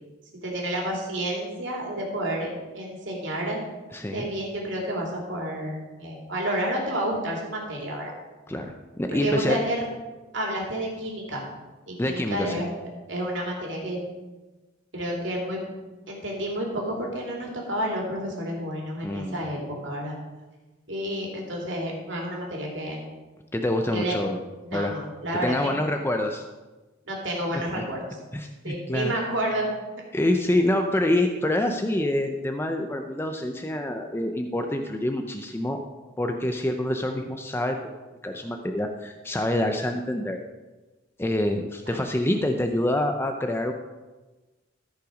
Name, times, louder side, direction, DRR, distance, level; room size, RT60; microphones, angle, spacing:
voice 1, 0.4-3.6 4.1-8.1 9.1-9.8 10.3-11.5 11.9-12.7 13.1-14.0 14.9-15.6 16.1-20.1 20.9-23.0 23.9-24.2 24.6-25.7 27.0-28.2 28.6-29.7 41.9-42.0, right 1 dB, 65° right, -2 dB, 2.8 m, -30 dB
voice 2, 3.9-4.3 8.5-9.6 12.0-12.6 19.0-19.4 23.5-24.4 24.7-24.9 25.3-26.4 27.8-27.9 28.3-29.1 30.1-35.8 36.2-37.8 38.2-40.4 41.2-43.7, left 1 dB, 10° left, 5 dB, 0.5 m, -26 dB
14.0 x 5.7 x 5.1 m, 1.2 s
head